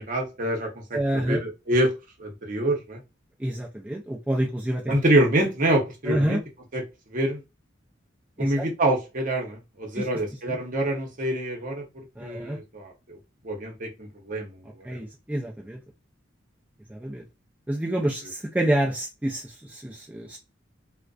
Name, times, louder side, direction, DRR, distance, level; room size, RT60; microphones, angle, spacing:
voice 1, 0.0-1.9 2.2-3.0 4.9-6.4 6.7-6.8 7.1-7.4 8.4-11.8 12.2-13.2 13.4-15.0, right 1 dB, 45° right, 0.8 m, -26 dB
voice 2, 0.9-1.4 3.4-4.9 6.1-6.4 8.4-8.7 9.9-10.1 10.5-10.6 12.2-12.6 14.8-15.8 16.9-17.2 17.7-20.4, right 1 dB, 5° right, 0.4 m, -28 dB
2.4 x 2.1 x 2.4 m
head